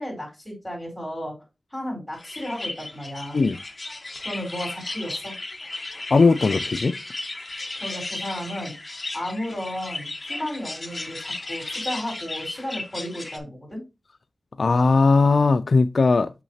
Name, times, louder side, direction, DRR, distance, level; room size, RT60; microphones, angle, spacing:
voice 1, 0.0-1.3 1.7-3.4 4.2-5.3 7.8-8.7 9.1-13.8, equal, 5° left, 4.1 m, -33 dB
sound 1, 2.2-13.4, left 2 dB, 35° left, 1.1 m, -35 dB
voice 2, 6.1-6.9 14.6-16.3, left 3 dB, 65° left, 0.3 m, -18 dB
6.4 x 5.9 x 2.8 m
wide cardioid pair, 90°, 0 cm